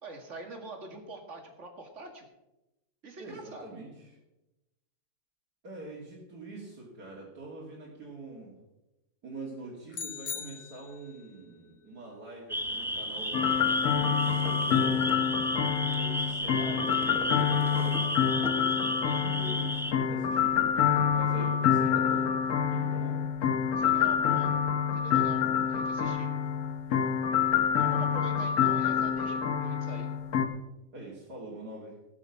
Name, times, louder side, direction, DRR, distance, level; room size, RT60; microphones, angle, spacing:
voice 1, 0.0-2.3 3.0-3.7 23.8-24.5 24.9-26.3 27.8-30.1, right 2 dB, 50° right, 3 dB, 2.2 m, -45 dB
voice 2, 3.2-4.1 5.6-8.6 9.2-13.7 13.9-15.1 15.9-20.8 21.1-23.2 30.9-32.0, right 2 dB, 80° right, -6 dB, 3.0 m, -44 dB
sound 1, 9.9-11.3, left 7 dB, 40° left, 1.0 m, -40 dB
sound 2, 12.5-19.9, equal, ahead, 0.6 m, -34 dB
sound 3, 13.3-30.5, left 8 dB, 70° left, 1.5 m, -27 dB
17.5 x 6.3 x 5.9 m, 0.97 s
omnidirectional pair, 1.7 m